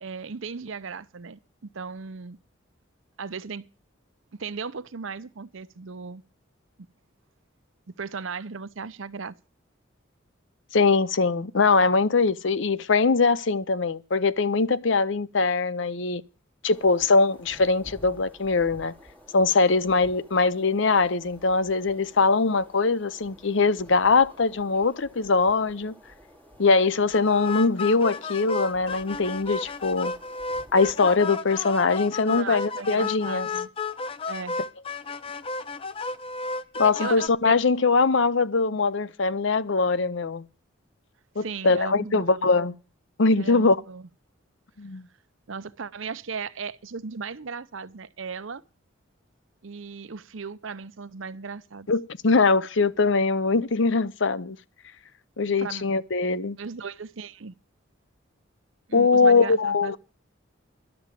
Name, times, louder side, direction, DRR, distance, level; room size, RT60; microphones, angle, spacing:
voice 1, 0.0-2.4 3.2-3.6 4.4-6.2 8.0-9.3 32.3-33.7 34.3-34.5 37.0-37.6 41.4-42.5 43.4-44.1 45.5-48.6 49.6-51.9 55.6-55.8 56.6-57.5 58.9-60.0, right 5 dB, 70° right, 0.7 m, -36 dB
voice 2, 10.7-16.2 16.6-18.9 19.3-25.9 26.6-30.1 30.7-33.5 36.8-40.4 41.4-42.8 43.2-43.8 44.8-45.0 51.9-54.6 55.4-56.6 58.9-60.0, left 4 dB, 65° left, 0.7 m, -22 dB
sound 1, 16.7-31.3, equal, 10° left, 2.6 m, -52 dB
sound 2, 27.1-37.3, left 4 dB, 25° left, 0.7 m, -33 dB
11.5 x 7.0 x 9.0 m
head